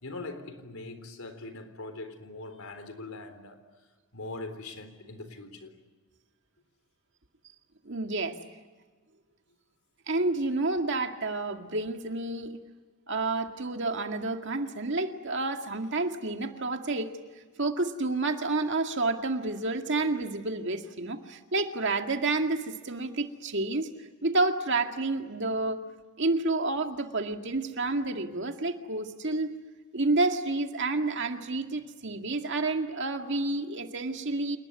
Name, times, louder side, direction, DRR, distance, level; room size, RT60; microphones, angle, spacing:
voice 1, 0.0-3.6 4.1-5.7, left 2 dB, 75° left, 3.8 m, -41 dB
voice 2, 7.8-8.4 10.1-12.5 13.1-17.1 17.6-23.9 24.2-25.8 26.2-29.6 29.9-34.6, right 2 dB, 55° right, 2.1 m, -29 dB
29.0 x 20.0 x 9.5 m
head